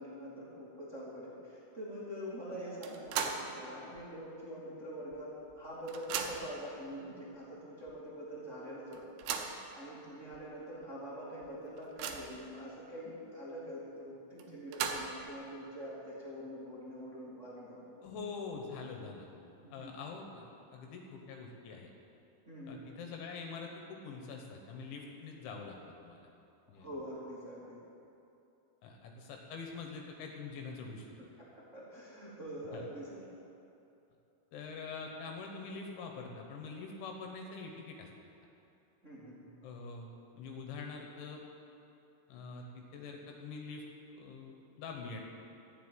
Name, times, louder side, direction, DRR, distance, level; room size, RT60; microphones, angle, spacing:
voice 1, 0.0-9.2 9.7-18.0 19.6-19.9 22.4-22.8 26.7-27.8 31.2-31.5 31.7-33.2 39.0-39.4, equal, 25° right, -8 dB, 1.5 m, -45 dB
sound 1, 2.8-3.6 4.0-4.1 5.1-5.2 5.5-6.6 7.4-7.5 7.9-8.0 8.9-9.6 10.3-10.4 10.8-10.9 11.4-12.4 14.4-15.3, right 7 dB, 80° right, 2.4 m, -38 dB
voice 2, 18.0-19.3 19.7-20.4 20.7-21.9 22.7-25.8 26.0-26.3 26.7-26.9 28.8-31.1 32.7-32.8 34.5-38.1 39.6-40.1 40.4-41.4 42.3-43.8 44.1-45.2, left 4 dB, 75° left, 2 dB, 3.3 m, -44 dB
13.5 x 7.3 x 9.1 m, 2.8 s
omnidirectional pair, 5.9 m